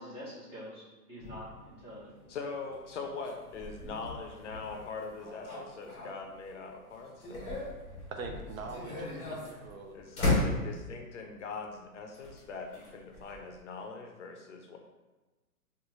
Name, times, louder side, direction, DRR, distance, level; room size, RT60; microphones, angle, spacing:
voice 1, 0.0-2.2, equal, 10° right, -8 dB, 0.6 m, -46 dB
sound 1, 1.2-6.5 6.9-11.1 12.1-13.6, left 2 dB, 15° left, 0.9 m, -37 dB
voice 2, 2.3-7.5 9.9-14.8, left 4 dB, 50° left, 3 dB, 0.5 m, -42 dB
voice 3, 8.1-10.0, right 4 dB, 60° right, 4 dB, 0.6 m, -43 dB
2.9 x 2.4 x 3.6 m, 1.2 s
hypercardioid pair, 140°, 46 cm